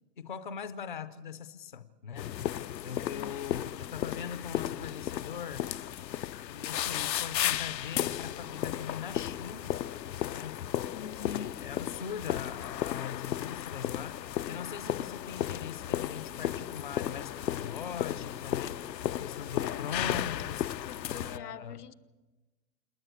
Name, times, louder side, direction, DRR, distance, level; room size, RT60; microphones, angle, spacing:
voice 1, 0.2-5.7 6.5-9.7 10.3-10.7 11.0-20.8 21.1-21.8, left 7 dB, 30° left, 12 dB, 0.5 m, -41 dB
sound 1, 2.2-21.4, left 11 dB, 85° left, 0.7 m, -34 dB
voice 2, 2.7-3.5 10.9-11.6 20.9-21.9, left 8 dB, 65° left, 18 dB, 1.1 m, -44 dB
27.5 x 10.5 x 9.3 m, 1.2 s
hypercardioid pair, 175°, 49 cm